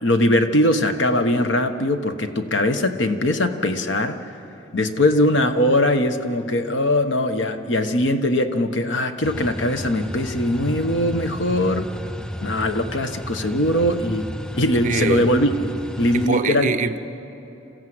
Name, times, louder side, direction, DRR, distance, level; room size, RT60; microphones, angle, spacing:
voice 1, 0.0-4.2 4.7-11.9 12.4-14.3 14.5-16.7, left 1 dB, 80° left, 8 dB, 1.2 m, -21 dB
sound 1, 9.2-16.3, equal, 5° left, 0.4 m, -32 dB
voice 2, 14.8-15.3 16.1-17.0, right 4 dB, 40° right, 7 dB, 0.8 m, -23 dB
28.0 x 15.0 x 7.9 m, 3.0 s
head